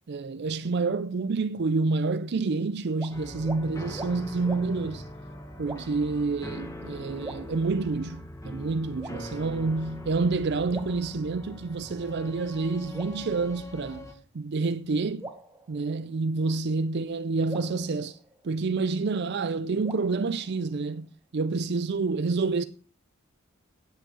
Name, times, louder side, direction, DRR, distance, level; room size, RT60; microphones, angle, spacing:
voice 1, 0.1-5.1 5.6-14.1 14.3-15.3 15.7-18.2 18.4-22.6, right 3 dB, 50° right, 0.4 m, -28 dB
Tap Drip Vox inc reverb, 2.9-3.1 3.4-3.6 3.9-4.1 4.4-4.6 5.6-6.1 7.2-8.1 9.0-9.7 10.7-11.7 12.9-14.1 15.2-16.4 17.5-18.9 19.8-21.0, right 1 dB, 15° right, 1.2 m, -43 dB
sound 1, 3.1-14.1, left 1 dB, 15° left, 1.4 m, -42 dB
10.0 x 8.0 x 6.2 m
head